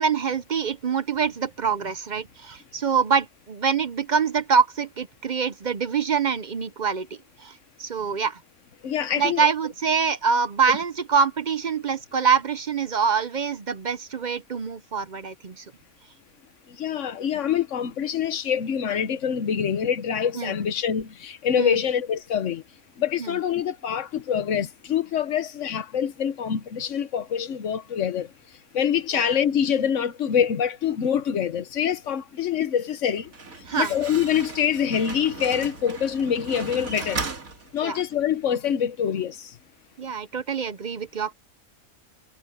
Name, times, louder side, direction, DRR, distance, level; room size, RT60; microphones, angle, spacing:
voice 1, 0.0-7.1 7.4-8.4 9.2-15.7 20.4-20.5 21.6-21.8 23.2-23.3 29.1-29.2 33.7-33.9 37.8-38.0 40.0-41.3, right 6 dB, 50° right, 0.5 m, -25 dB
voice 2, 8.8-9.5 16.7-22.6 23.0-28.3 28.7-33.3 33.8-37.2 37.7-39.5, left 8 dB, 60° left, 1.3 m, -25 dB
Slam, 33.1-38.2, right 4 dB, 70° right, 2.8 m, -36 dB
omnidirectional pair, 1.5 m